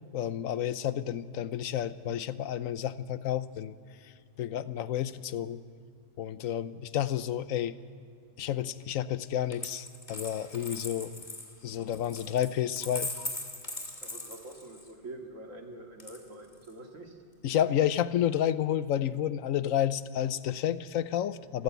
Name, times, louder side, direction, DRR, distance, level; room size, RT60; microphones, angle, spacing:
voice 1, 0.1-3.8 4.0-4.1 4.4-5.6 6.2-7.8 8.4-11.1 11.6-13.3 17.4-21.6, left 10 dB, 85° left, 15 dB, 1.1 m, -30 dB
Coin (dropping), 9.5-14.9 16.0-16.7, left 2 dB, 35° left, 2.7 m, -40 dB
voice 2, 14.0-17.2, right 2 dB, 75° right, 3 dB, 2.5 m, -45 dB
27.0 x 15.0 x 8.3 m, 2.1 s
omnidirectional pair, 1.3 m